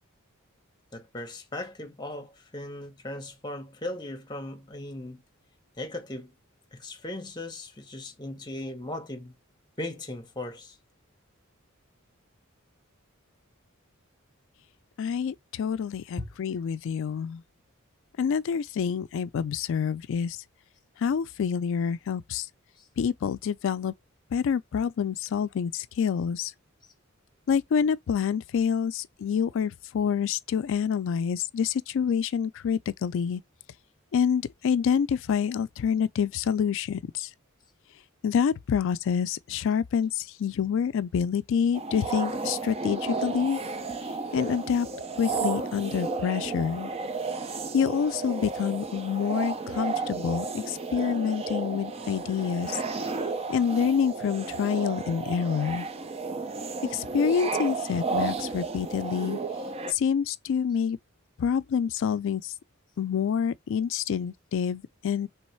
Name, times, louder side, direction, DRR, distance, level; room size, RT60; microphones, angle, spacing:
voice 1, 0.9-5.2 5.8-6.3 6.7-9.3 9.8-10.8 16.2-16.4 22.8-22.9, left 1 dB, 20° left, 0.9 m, -38 dB
voice 2, 15.0-17.4 18.2-20.4 21.0-22.5 23.0-23.9 24.3-26.5 27.5-33.4 34.1-37.3 38.2-43.6 44.3-44.9 45.2-46.9 47.7-52.8 53.5-55.9 56.9-59.4 59.9-61.0 61.4-62.5 63.0-65.3, left 7 dB, 65° left, 0.3 m, -27 dB
sound 1, 41.7-59.9, right 4 dB, 30° right, 0.5 m, -33 dB
3.4 x 3.1 x 4.3 m
head